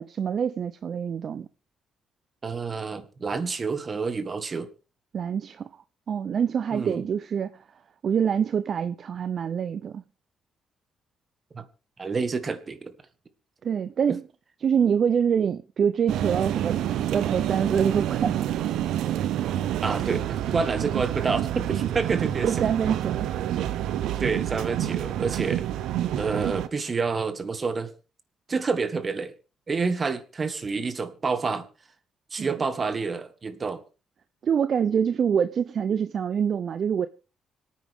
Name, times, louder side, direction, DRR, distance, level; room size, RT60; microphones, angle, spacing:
voice 1, 0.0-1.5 5.1-5.7 6.1-7.5 8.0-10.0 13.6-14.2 14.6-16.8 17.1-18.4 22.4-23.3 32.4-32.6 34.4-37.1, right 7 dB, 55° right, 0.6 m, -25 dB
voice 2, 2.4-4.7 6.7-7.0 11.5-11.7 12.0-12.9 14.1-14.2 19.8-22.6 24.2-25.7 26.2-27.9 28.5-29.3 29.7-31.7 32.3-33.8, right 4 dB, 35° right, 2.0 m, -28 dB
sound 1, 16.1-26.7, right 11 dB, 85° right, 0.8 m, -28 dB
25.5 x 9.3 x 3.6 m
cardioid pair, 90°, 0 cm